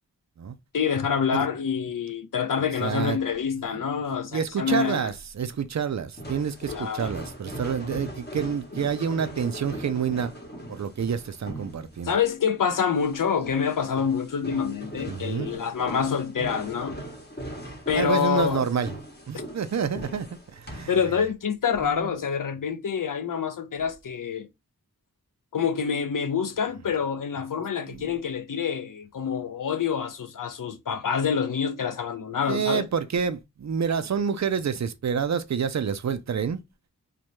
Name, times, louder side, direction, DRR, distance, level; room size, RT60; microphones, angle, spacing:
voice 1, 0.7-5.1 6.7-7.1 12.0-17.0 17.9-18.6 20.9-24.5 25.5-32.9, left 7 dB, 60° left, 0.5 m, -27 dB
voice 2, 2.8-3.2 4.3-10.3 10.7-12.1 15.1-15.6 17.9-19.0 19.3-20.9 21.8-22.1 27.9-28.1 32.5-36.6, right 7 dB, 50° right, 0.4 m, -28 dB
sound 1, 6.1-21.0, equal, 30° left, 1.0 m, -39 dB
2.7 x 2.1 x 3.0 m
wide cardioid pair, 40°, 37 cm